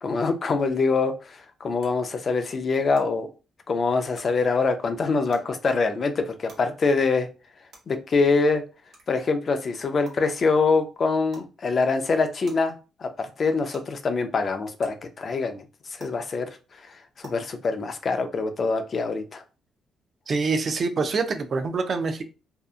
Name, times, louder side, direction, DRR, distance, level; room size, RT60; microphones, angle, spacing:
voice 1, 0.0-3.3 3.7-7.3 7.9-8.6 9.1-12.7 13.0-15.6 16.0-16.5 16.9-19.4, left 4 dB, 45° left, 7 dB, 0.4 m, -24 dB
sound 1, 0.6-0.7 1.8-1.9 2.9-3.0 4.1-4.2 5.3-5.4 6.5-6.6 7.7-7.8 8.9-9.0 10.0-10.1 11.3-11.5 12.4-12.5 13.7-13.8 14.8-14.9 16.0-16.1 17.2-17.3, right 2 dB, 65° right, 1.0 m, -46 dB
voice 2, 20.3-22.2, right 4 dB, 45° right, 8 dB, 0.4 m, -25 dB
2.7 x 2.3 x 2.4 m, 0.32 s
cardioid pair, 90°, 0 cm